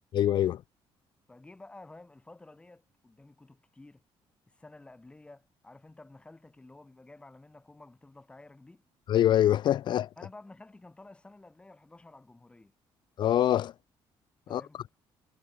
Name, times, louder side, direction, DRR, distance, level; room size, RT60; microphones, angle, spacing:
voice 1, 0.1-0.6 9.1-10.1 13.2-13.7 14.5-14.6, left 11 dB, 50° left, 0.7 m, -24 dB
voice 2, 1.3-4.0 4.5-8.8 10.2-12.7 14.5-14.8, left 2 dB, 10° left, 7.5 m, -52 dB
cardioid pair, 160°, 10 cm